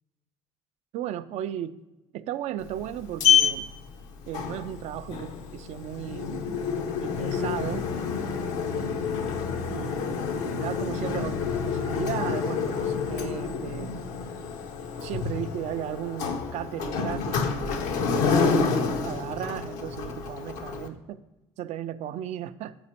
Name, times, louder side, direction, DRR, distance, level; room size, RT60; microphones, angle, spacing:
voice 1, 0.9-1.8 2.1-3.7 4.3-6.6 7.0-7.9 8.7-9.3 9.7-13.9 15.0-21.2 21.6-22.8, right 11 dB, 65° right, 13 dB, 0.4 m, -35 dB
Sliding door, 2.6-20.9, left 6 dB, 75° left, 0.6 m, -28 dB
7.7 x 4.2 x 4.3 m, 0.99 s
supercardioid pair, 70°, 12 cm